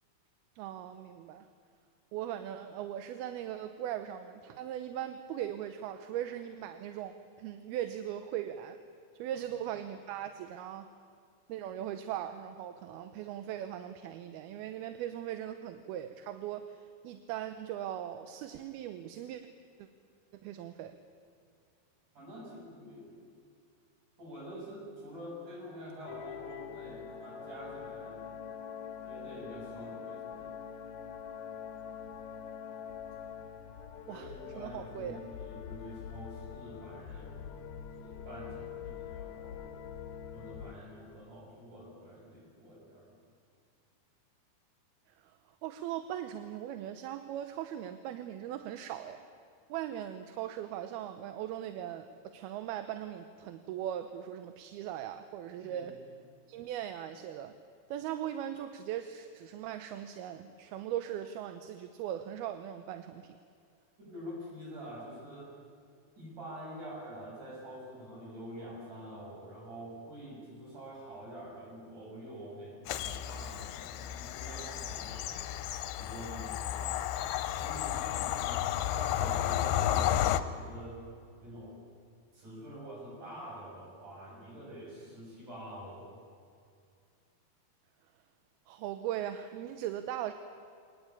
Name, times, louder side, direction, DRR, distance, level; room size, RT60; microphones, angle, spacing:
voice 1, 0.6-1.5 2.1-8.8 9.2-10.9 11.5-19.4 19.8-19.9 20.3-21.0 34.1-35.2 45.1-45.3 45.6-49.2 49.7-56.0 56.5-57.5 57.9-63.4 88.7-90.3, right 11 dB, 75° right, 9 dB, 2.6 m, -39 dB
voice 2, 22.2-23.3 24.2-28.3 29.0-30.5 34.1-37.6 38.0-39.7 40.3-43.2 55.6-55.9 64.0-65.6 66.2-75.4 75.9-77.2 77.6-81.0 81.4-81.8 82.3-86.2, equal, 50° right, -3 dB, 8.9 m, -47 dB
sound 1, 26.1-40.7, left 8 dB, 60° left, 2.2 m, -44 dB
Bird vocalization bird call bird song / Train, 72.9-80.4, left 11 dB, 75° left, 2.6 m, -32 dB
24.5 x 19.5 x 8.6 m, 2.4 s
omnidirectional pair, 4.7 m